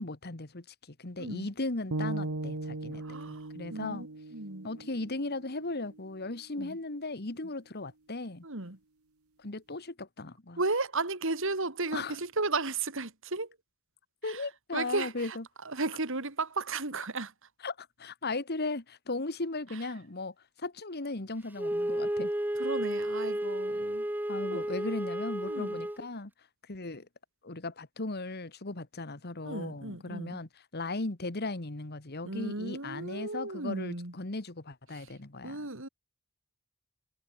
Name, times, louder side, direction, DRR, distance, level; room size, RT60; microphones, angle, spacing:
voice 1, 0.0-4.1 4.6-8.4 9.4-10.6 11.9-12.2 14.2-15.4 17.6-22.3 24.3-26.3 26.7-27.1 27.4-35.7, left 2 dB, 45° left, 1.6 m, -37 dB
voice 2, 1.2-1.5 3.0-4.1 4.3-4.7 6.6-6.8 8.4-8.8 10.6-13.5 14.3-14.4 14.7-15.4 15.7-17.3 22.6-24.1 24.5-24.6 25.5-25.8 29.4-30.4 32.2-34.1 35.4-35.9, right 3 dB, 60° right, 3.1 m, -34 dB
sound 1, 1.9-6.0, right 2 dB, 85° right, 1.6 m, -38 dB
Wind instrument woodwind instrument, 21.6-26.0, right 1 dB, 10° right, 1.0 m, -32 dB
head